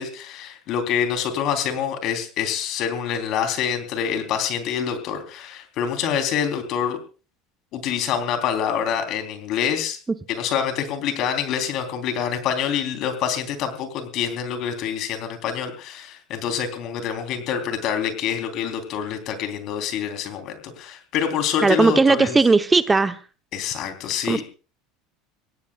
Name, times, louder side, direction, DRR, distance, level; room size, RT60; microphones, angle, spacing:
voice 1, 0.0-7.0 7.7-10.0 10.3-22.4 23.5-24.4, left 8 dB, 55° left, 6 dB, 3.5 m, -26 dB
voice 2, 21.6-23.2 24.3-24.4, right 3 dB, 15° right, 10 dB, 0.8 m, -17 dB
24.5 x 17.0 x 2.4 m, 0.34 s
hypercardioid pair, 95°, 0 cm